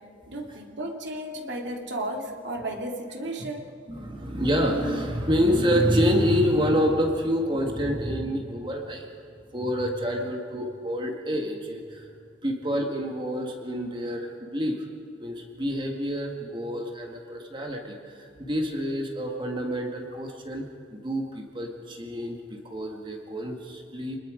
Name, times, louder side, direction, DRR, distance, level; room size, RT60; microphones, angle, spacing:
voice 1, 0.3-3.7, right 1 dB, 65° right, 2 dB, 2.6 m, -34 dB
voice 2, 3.9-9.1 9.5-12.0 12.4-14.8 15.2-24.2, equal, 25° right, 1 dB, 1.8 m, -27 dB
26.5 x 20.5 x 5.1 m, 2.4 s
head